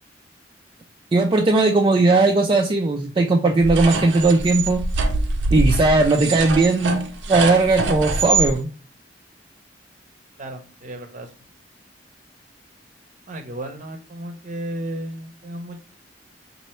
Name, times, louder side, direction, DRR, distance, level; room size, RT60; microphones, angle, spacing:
voice 1, 1.1-4.8 5.5-8.7, right 3 dB, 25° right, 2 dB, 0.4 m, -18 dB
sound 1, 3.6-8.5, right 3 dB, 80° right, 0.6 m, -24 dB
voice 2, 10.4-11.3 13.3-15.8, right 1 dB, 45° right, 5 dB, 0.7 m, -34 dB
4.1 x 2.6 x 3.2 m, 0.38 s
head